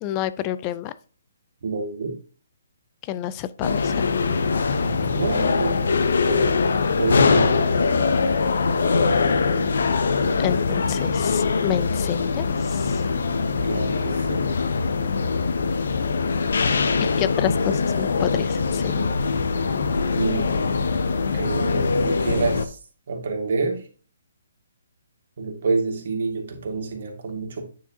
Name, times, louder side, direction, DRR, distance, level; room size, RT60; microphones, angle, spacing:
voice 1, 0.0-0.9 3.1-4.1 10.4-13.0 17.2-19.1, left 12 dB, 20° left, 15 dB, 0.3 m, -29 dB
voice 2, 1.6-2.1 4.8-5.9 6.3-6.6 7.0-7.7 13.7-14.4 20.1-20.5 21.3-22.8 23.1-23.8 25.4-27.6, right 4 dB, 55° right, 4 dB, 1.8 m, -27 dB
sound 1, 3.6-22.7, left 4 dB, 70° left, 0.7 m, -22 dB
8.9 x 4.7 x 2.7 m, 0.38 s
hypercardioid pair, 165°, 0 cm